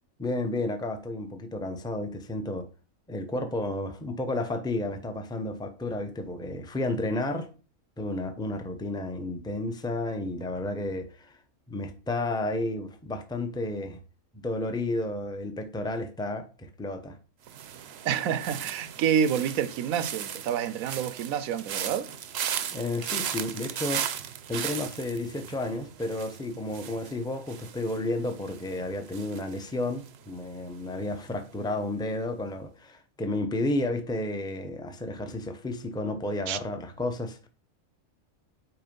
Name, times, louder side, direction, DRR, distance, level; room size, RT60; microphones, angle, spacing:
voice 1, 0.2-2.7 3.1-7.5 8.0-11.3 11.7-14.0 14.3-17.2 22.7-24.1 24.5-37.5, left 2 dB, 5° left, 0.6 m, -32 dB
sound 1, 17.5-30.5 30.8-31.2, right 9 dB, 60° right, 0.8 m, -37 dB
voice 2, 18.0-22.1 36.5-36.6, right 8 dB, 85° right, 1.1 m, -28 dB
5.9 x 4.6 x 5.3 m
omnidirectional pair, 1.4 m